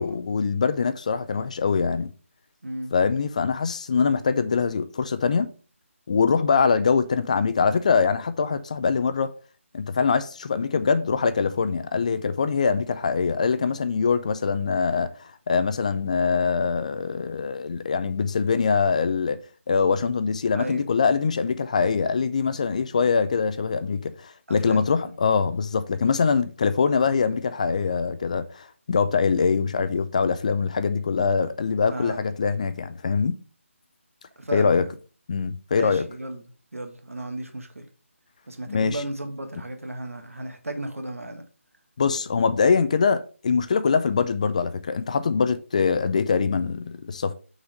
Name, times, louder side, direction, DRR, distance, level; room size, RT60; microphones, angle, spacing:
voice 1, 0.0-2.1 2.9-5.5 6.1-9.3 9.7-19.4 19.7-33.4 34.5-34.8 35.3-36.0 38.7-39.0 42.0-47.3, left 5 dB, 30° left, 0.4 m, -23 dB
voice 2, 2.6-2.9 20.5-20.9 24.5-24.8 31.9-32.3 34.3-34.9 35.7-36.4 36.7-37.9 38.5-41.4, right 1 dB, 80° right, 1.6 m, -34 dB
5.9 x 4.1 x 5.0 m
figure-of-eight pair, 160°, 7 cm